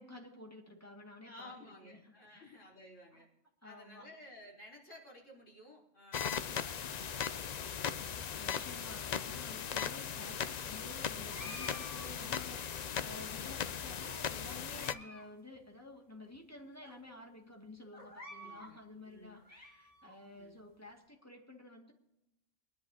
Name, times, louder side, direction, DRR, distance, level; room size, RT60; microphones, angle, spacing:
voice 1, 0.0-1.5 1.8-2.7 3.1-3.2 3.6-4.1 8.4-21.9, left 2 dB, 10° left, 0 dB, 2.1 m, -52 dB
voice 2, 1.2-3.3 3.6-7.9 18.4-18.8 19.1-19.4 20.3-20.6, left 1 dB, 80° left, -4 dB, 4.2 m, -55 dB
sound 1, 6.1-14.9, left 8 dB, 55° left, 0.4 m, -38 dB
sound 2, 11.3-12.7 13.4-14.1 14.6-15.3 15.5-15.6 16.3-16.4 16.8-16.9 17.9-18.7 19.2-20.2, left 1 dB, 30° left, 1.9 m, -51 dB
24.0 x 11.0 x 2.8 m, 0.88 s
omnidirectional pair, 1.3 m